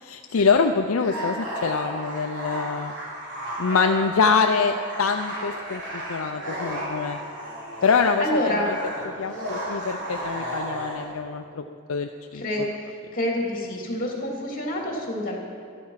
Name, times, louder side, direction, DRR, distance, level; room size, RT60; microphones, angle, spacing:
voice 1, 0.0-2.9 3.6-7.2 7.8-8.2 8.6-8.7 9.2-12.4, left 5 dB, 70° left, 5 dB, 0.5 m, -24 dB
sound 1, 0.9-11.1, equal, 55° right, 4.2 m, -33 dB
voice 2, 8.2-8.7 12.3-15.4, equal, 40° left, -1 dB, 3.1 m, -28 dB
13.5 x 13.0 x 5.8 m, 2.3 s
head